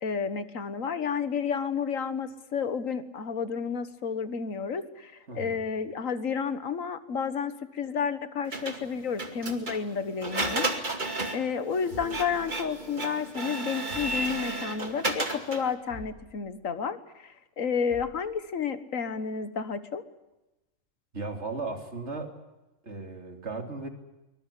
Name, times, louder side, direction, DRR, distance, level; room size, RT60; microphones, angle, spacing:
voice 1, 0.0-11.0 11.3-20.0, left 6 dB, 85° left, 12 dB, 1.8 m, -31 dB
voice 2, 5.3-5.7 21.1-22.3 22.8-23.9, right 3 dB, 60° right, 5 dB, 3.1 m, -36 dB
Printer, 8.5-15.7, right 2 dB, 35° right, 2.4 m, -33 dB
sound 1, 11.9-13.0 13.9-14.8 15.9-16.6 17.9-18.4, left 1 dB, 65° left, 8.1 m, -48 dB
23.5 x 21.5 x 8.4 m, 1.0 s
omnidirectional pair, 1.3 m